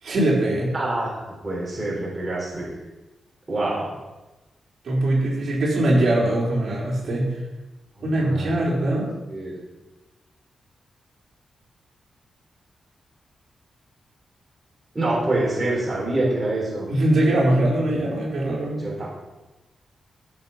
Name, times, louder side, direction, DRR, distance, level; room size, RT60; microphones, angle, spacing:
voice 1, 0.0-0.7 4.8-7.4 8.0-9.1 16.9-18.8, right 1 dB, 55° right, -4 dB, 4.2 m, -21 dB
voice 2, 0.7-2.7 3.5-3.9 7.0-7.1 8.0-8.6 9.3-9.6 14.9-16.9 18.6-19.1, right 2 dB, 20° right, -5 dB, 3.8 m, -26 dB
14.5 x 6.4 x 5.8 m, 1.1 s
wide cardioid pair, 155°, 0 cm